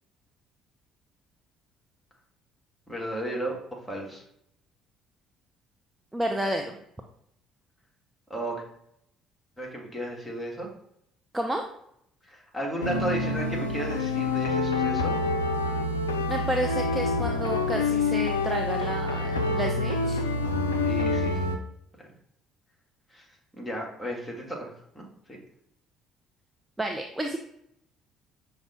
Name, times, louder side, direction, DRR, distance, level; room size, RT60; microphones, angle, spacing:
voice 1, 2.9-3.6 3.9-4.2 8.3-8.6 9.6-10.7 12.2-15.1 20.8-21.4 22.0-22.1 23.1-23.2 23.5-25.4, right 1 dB, 10° left, -2 dB, 1.5 m, -34 dB
voice 2, 6.1-6.8 11.3-11.7 16.3-20.2 26.8-27.4, right 1 dB, 10° right, 3 dB, 0.4 m, -30 dB
sound 1, 12.8-21.6, left 3 dB, 85° left, 0.3 m, -27 dB
5.8 x 2.1 x 4.1 m, 0.73 s
figure-of-eight pair, 50°, 0 cm